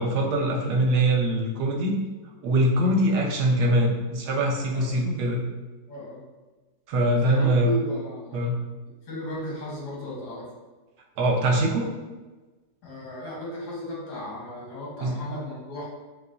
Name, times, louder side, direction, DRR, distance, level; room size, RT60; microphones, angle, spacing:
voice 1, 0.0-2.0 2.4-5.4 6.9-7.7 8.3-8.6 11.2-11.9 15.0-15.2, right 1 dB, 80° right, 0 dB, 1.3 m, -23 dB
voice 2, 5.9-6.2 7.1-8.4 9.1-10.5 12.8-15.8, equal, 85° left, -4 dB, 1.7 m, -34 dB
5.5 x 2.2 x 2.5 m, 1.2 s
omnidirectional pair, 1.7 m